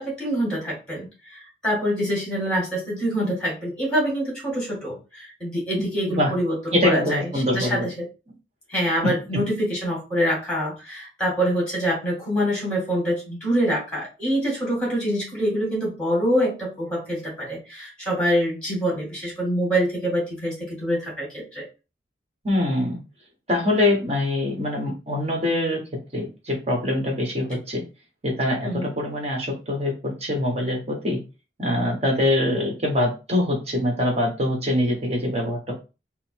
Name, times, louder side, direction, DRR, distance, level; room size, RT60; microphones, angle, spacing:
voice 1, 0.0-8.1 8.7-21.7 28.6-28.9, equal, 5° left, -4 dB, 2.0 m, -25 dB
voice 2, 6.7-7.9 9.3-9.4 22.4-23.0 23.5-25.8 26.1-27.8 28.2-31.2 31.6-35.7, left 1 dB, 35° right, 1 dB, 1.2 m, -24 dB
4.0 x 2.0 x 4.3 m, 0.30 s
head